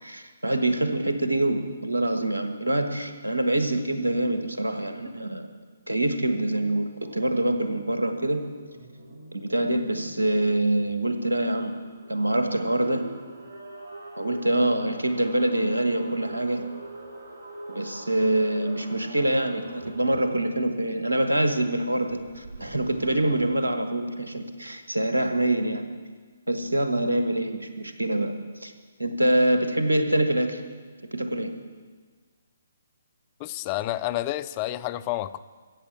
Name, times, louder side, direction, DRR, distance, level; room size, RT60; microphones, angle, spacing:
voice 1, 0.0-5.5 5.9-8.4 9.3-11.7 12.1-13.0 14.2-16.7 17.7-25.8 26.5-28.7 29.0-30.6 31.1-31.5, right 1 dB, 85° right, 7 dB, 1.3 m, -25 dB
sound 1, 7.0-7.4 8.5-10.9 11.7-20.7 22.1-23.5, right 1 dB, 55° right, 3.4 m, -43 dB
voice 2, 33.4-35.4, left 15 dB, 30° left, 16 dB, 0.4 m, -29 dB
15.0 x 7.4 x 7.3 m, 1.5 s
figure-of-eight pair, 135°, 0 cm